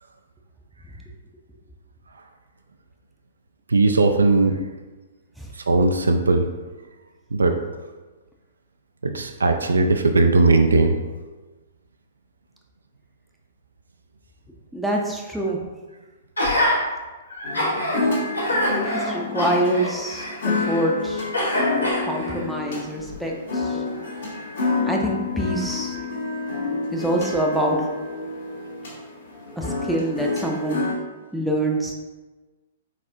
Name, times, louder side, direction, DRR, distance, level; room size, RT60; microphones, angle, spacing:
voice 1, 3.7-4.6 5.7-6.5 7.3-7.6 9.0-11.0, right 3 dB, 70° right, 6 dB, 0.4 m, -18 dB
voice 2, 14.7-15.6 18.8-21.3 22.1-23.8 24.6-26.0 26.9-27.8 29.6-30.9 31.3-31.9, right 1 dB, ahead, -1 dB, 0.6 m, -25 dB
Gasp, 16.4-16.8 17.3-18.0 18.3-20.8 21.3-22.4 23.0-23.2, left 1 dB, 80° left, 1.4 m, -25 dB
sound 1, 17.4-30.9, left 4 dB, 60° left, 1.4 m, -29 dB
4.3 x 4.0 x 2.6 m, 1.2 s
figure-of-eight pair, 110°, 0 cm